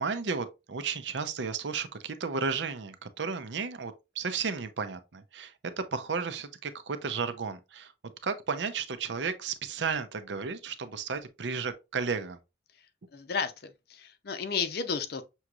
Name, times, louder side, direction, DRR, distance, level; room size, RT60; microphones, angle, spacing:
voice 1, 0.0-7.9 8.2-12.4, right 5 dB, 80° right, 0.6 m, -33 dB
voice 2, 13.1-15.2, left 5 dB, 60° left, 0.6 m, -33 dB
6.3 x 3.0 x 2.4 m
head